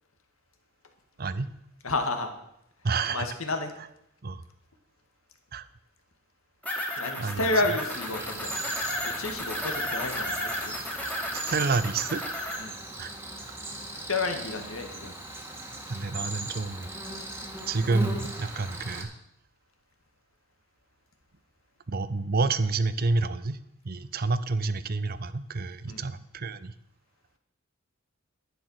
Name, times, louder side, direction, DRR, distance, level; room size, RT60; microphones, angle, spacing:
voice 1, 1.2-1.5 2.8-3.3 4.2-4.4 5.5-5.6 7.2-7.5 11.5-12.2 13.0-13.1 15.9-16.9 17.7-19.1 21.9-23.6 23.8-26.7, right 3 dB, 45° right, 14 dB, 0.7 m, -28 dB
voice 2, 1.8-2.3 3.1-3.7 7.0-8.5 9.2-10.5 12.6-12.8 14.1-15.1 25.9-26.0, left 2 dB, 80° left, 6 dB, 2.0 m, -30 dB
sound 1, 6.6-12.6, left 1 dB, 5° left, 2.4 m, -33 dB
Cricket, 7.9-19.0, right 1 dB, 10° right, 1.9 m, -39 dB
11.0 x 10.0 x 6.5 m, 0.78 s
head